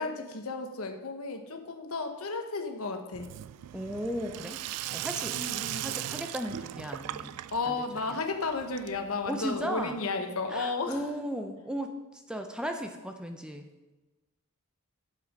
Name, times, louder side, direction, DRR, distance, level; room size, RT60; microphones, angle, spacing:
voice 1, 0.0-3.3 5.3-5.9 7.5-11.0, left 3 dB, 70° left, 5 dB, 1.1 m, -33 dB
Sink (filling or washing), 3.1-9.9, right 13 dB, 85° right, 0.3 m, -38 dB
voice 2, 3.7-4.6 4.9-5.4 5.8-7.3 7.7-7.8 8.1-8.2 9.3-10.0 10.5-11.9 12.3-13.7, equal, 5° right, 5 dB, 0.6 m, -35 dB
7.9 x 7.3 x 5.2 m, 1.1 s
head